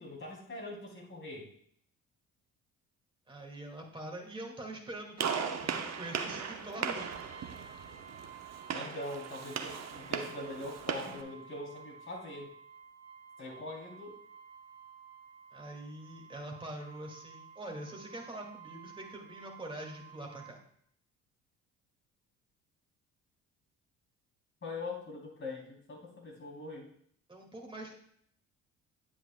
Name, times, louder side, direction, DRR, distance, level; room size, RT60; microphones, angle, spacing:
voice 1, 0.0-1.5 8.7-12.5 13.4-14.2 24.6-26.9, left 2 dB, 30° left, -1 dB, 3.3 m, -42 dB
voice 2, 3.3-7.1 15.5-20.6 27.3-27.9, right 1 dB, 10° right, 0 dB, 2.1 m, -44 dB
Gunshot gunfire, 5.2-11.2, right 6 dB, 40° right, 1.0 m, -38 dB
Brass instrument, 7.0-20.6, right 7 dB, 70° right, 1.1 m, -53 dB
9.4 x 8.0 x 2.3 m, 0.64 s
hypercardioid pair, 55°, 40 cm